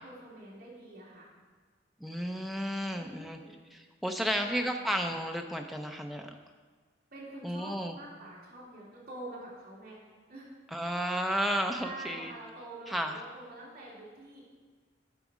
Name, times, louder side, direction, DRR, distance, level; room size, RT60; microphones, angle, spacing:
voice 1, 0.0-1.3 2.9-3.5 4.2-4.7 7.1-10.0 10.3-10.5 11.8-14.5, right 1 dB, 50° right, -7 dB, 2.8 m, -46 dB
voice 2, 2.0-3.4 3.7-6.4 7.4-8.0 10.7-12.3 12.9-13.2, equal, ahead, 3 dB, 0.5 m, -32 dB
11.5 x 4.1 x 6.1 m, 1.5 s
head